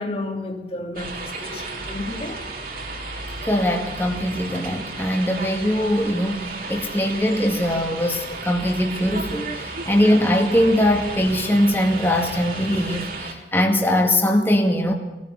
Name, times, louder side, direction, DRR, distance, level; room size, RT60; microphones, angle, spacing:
voice 1, 0.0-2.5, left 2 dB, 35° left, 2.7 m, -32 dB
sound 1, 1.0-13.3, right 3 dB, 55° right, 3.4 m, -33 dB
voice 2, 3.4-14.9, left 1 dB, 10° left, 2.1 m, -21 dB
20.5 x 15.0 x 8.4 m
head